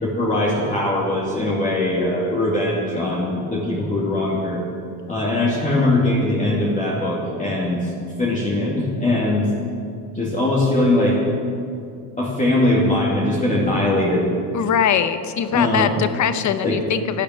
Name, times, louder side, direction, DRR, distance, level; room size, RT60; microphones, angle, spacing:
voice 1, 0.0-4.6 5.1-7.9 8.2-9.5 10.1-11.4 12.2-14.3 15.5-15.9 16.6-16.8, left 1 dB, 15° left, -5 dB, 2.3 m, -21 dB
voice 2, 14.5-17.2, left 8 dB, 40° left, 11 dB, 0.9 m, -21 dB
12.0 x 10.5 x 9.1 m, 2.5 s
cardioid pair, 135°, 46 cm